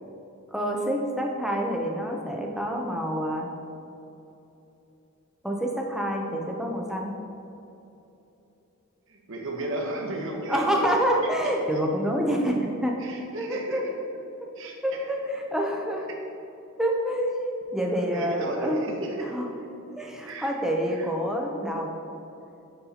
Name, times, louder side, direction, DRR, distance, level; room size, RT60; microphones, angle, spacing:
voice 1, 0.5-3.5 5.4-7.2 10.5-13.0 13.4-13.8 14.8-16.1 16.8-17.4 17.7-18.9 19.2-19.5 19.9-22.0, equal, ahead, 0 dB, 0.5 m, -27 dB
voice 2, 9.1-10.9 11.2-11.5 13.0-14.0 14.6-15.2 17.9-19.7 20.2-20.5 20.9-21.1, right 1 dB, 60° right, 1 dB, 0.9 m, -34 dB
8.0 x 5.4 x 2.8 m, 2.9 s
head